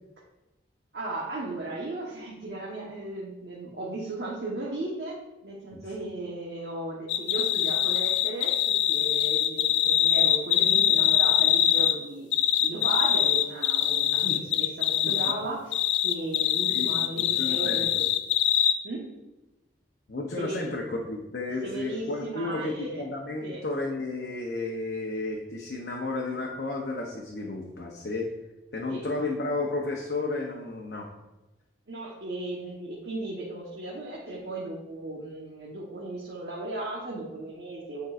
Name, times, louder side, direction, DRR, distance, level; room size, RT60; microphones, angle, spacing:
voice 1, 0.9-12.3 12.6-14.2 14.5-17.9 18.8-19.1 20.4-20.7 21.6-23.0 23.4-23.6 28.9-29.0 31.9-38.1, right 2 dB, 65° right, -4 dB, 1.1 m, -36 dB
sound 1, 7.1-12.0 12.3-15.3 15.7-18.7, left 11 dB, 90° left, 0.4 m, -23 dB
voice 2, 16.7-18.1 20.1-28.3 28.7-31.1, left 2 dB, 65° left, -1 dB, 0.7 m, -33 dB
9.1 x 4.5 x 2.5 m, 1.0 s
head